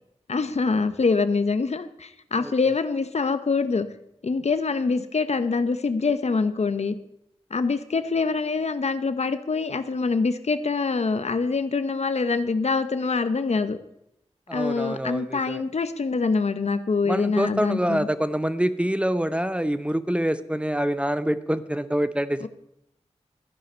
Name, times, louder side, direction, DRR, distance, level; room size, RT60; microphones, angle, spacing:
voice 1, 0.3-3.9 4.2-7.0 7.5-13.8 14.5-18.1 22.4-22.5, left 4 dB, 70° left, 11 dB, 0.9 m, -25 dB
voice 2, 14.5-15.6 17.0-22.5, equal, 10° right, 13 dB, 0.8 m, -26 dB
13.5 x 10.5 x 4.4 m, 0.79 s
cardioid pair, 40°, 12 cm